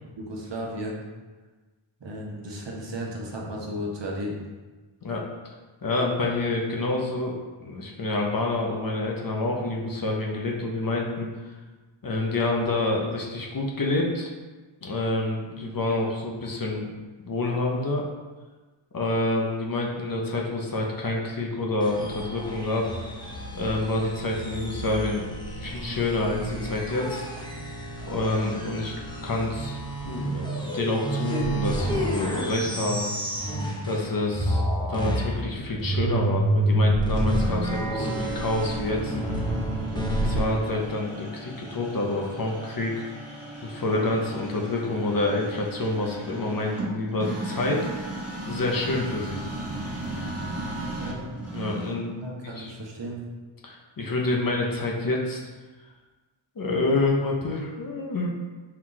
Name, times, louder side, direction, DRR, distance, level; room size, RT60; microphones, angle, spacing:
voice 1, 0.0-1.0 2.0-4.4 51.0-51.2 52.2-53.2, equal, 60° right, -2 dB, 0.9 m, -34 dB
voice 2, 5.0-5.5 5.8-11.3 12.0-14.3 14.8-16.9 17.3-18.0 18.9-22.9 23.5-25.3 25.5-27.3 28.1-28.9 29.2-29.8 30.0-33.1 33.8-34.6 34.9-39.2 39.9-43.0 43.6-47.8 48.4-49.4 51.5-52.1 52.4-52.7 53.6-55.4 56.6-58.3, left 2 dB, 45° left, -1 dB, 0.7 m, -27 dB
sound 1, 21.8-34.1 34.3-40.4, right 1 dB, 10° left, 0.7 m, -29 dB
sound 2, 37.2-52.2, right 2 dB, 30° right, 1.2 m, -36 dB
4.6 x 2.4 x 3.8 m, 1.3 s
wide cardioid pair, 70°, 49 cm